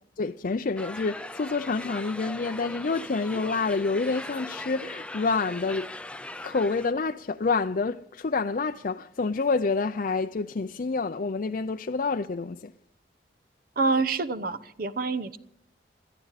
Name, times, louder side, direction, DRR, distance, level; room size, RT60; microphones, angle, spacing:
voice 1, 0.2-5.9 6.4-12.7, left 4 dB, 50° left, 0.5 m, -28 dB
sound 1, 0.8-6.9, left 1 dB, 5° left, 0.5 m, -39 dB
voice 2, 13.8-15.4, right 3 dB, 55° right, 0.9 m, -27 dB
21.5 x 14.0 x 4.1 m
head